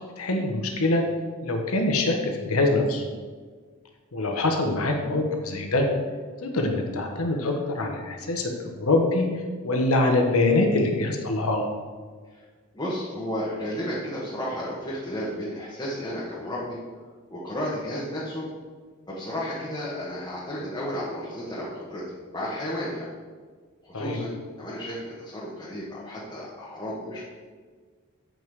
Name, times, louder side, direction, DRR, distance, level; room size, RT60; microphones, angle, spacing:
voice 1, 0.2-1.0 1.4-3.0 4.1-5.9 6.4-9.3 9.6-11.7 23.9-24.2, left 2 dB, 85° left, 2 dB, 1.2 m, -24 dB
voice 2, 12.7-16.8 17.3-18.5 19.1-22.0 22.3-23.1 23.8-27.2, equal, 20° left, -8 dB, 1.3 m, -33 dB
7.7 x 5.5 x 4.8 m, 1.5 s
head